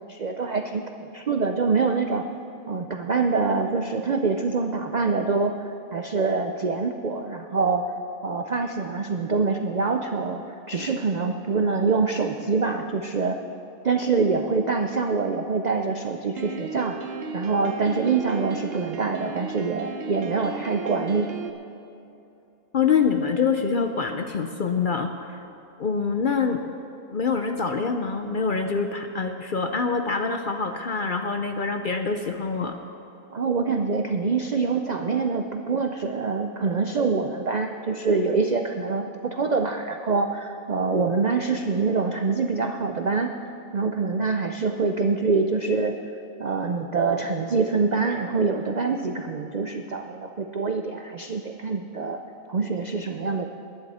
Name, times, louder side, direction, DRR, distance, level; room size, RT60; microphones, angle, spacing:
voice 1, 0.1-2.3 2.7-7.9 8.2-10.4 10.7-13.4 13.8-17.0 17.3-21.3 33.3-43.3 43.7-46.0 46.4-52.2 52.5-53.4, right 4 dB, 90° right, 5 dB, 0.3 m, -25 dB
Piano, 16.4-21.5, right 5 dB, 50° right, 0.9 m, -35 dB
voice 2, 22.7-25.4 25.8-26.6 27.1-32.8, left 5 dB, 55° left, 6 dB, 0.6 m, -25 dB
21.0 x 10.5 x 4.2 m, 2.8 s
omnidirectional pair, 1.5 m